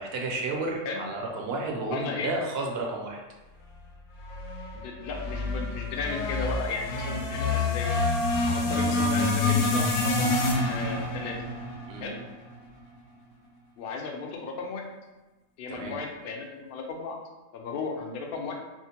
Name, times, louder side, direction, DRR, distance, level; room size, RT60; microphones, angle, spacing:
voice 1, 0.0-3.2 11.9-12.0 15.7-15.9, right 2 dB, 60° right, 0 dB, 0.8 m, -32 dB
voice 2, 1.9-2.3 4.7-7.9 8.5-10.4 10.7-11.4 12.0-12.2 13.8-14.8 15.6-17.2 17.5-18.6, left 4 dB, 60° left, 1 dB, 0.6 m, -35 dB
sound 1, 4.2-12.6, left 2 dB, 80° left, 0.9 m, -27 dB
4.3 x 2.1 x 2.8 m, 1.1 s
omnidirectional pair, 1.3 m